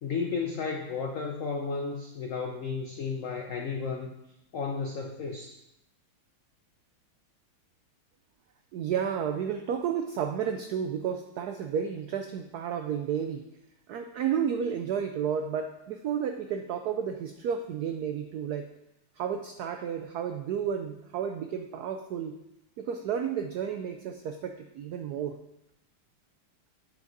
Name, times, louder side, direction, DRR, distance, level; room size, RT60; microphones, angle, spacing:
voice 1, 0.0-4.1 4.5-5.5, left 5 dB, 85° left, 3 dB, 0.7 m, -33 dB
voice 2, 8.7-13.4 13.9-18.7 19.2-22.4 22.8-25.4, right 8 dB, 85° right, 6 dB, 0.8 m, -32 dB
9.2 x 5.0 x 3.9 m, 0.86 s
omnidirectional pair, 2.2 m